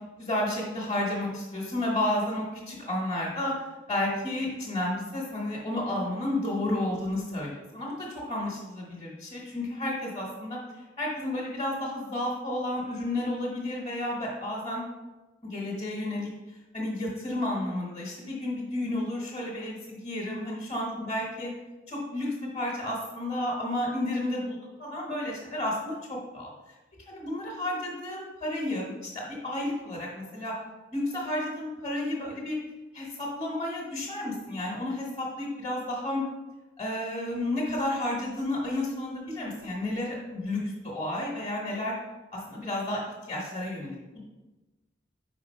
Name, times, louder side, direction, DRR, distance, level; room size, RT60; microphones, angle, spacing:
voice 1, 0.2-3.5 3.9-10.6 11.0-14.8 15.4-16.3 16.7-21.5 21.9-26.5 27.1-30.5 30.9-32.6 32.9-36.2 36.8-41.9 42.3-43.0 43.3-44.2, left 1 dB, 30° left, -3 dB, 1.2 m, -31 dB
5.0 x 5.0 x 4.5 m, 1.1 s
head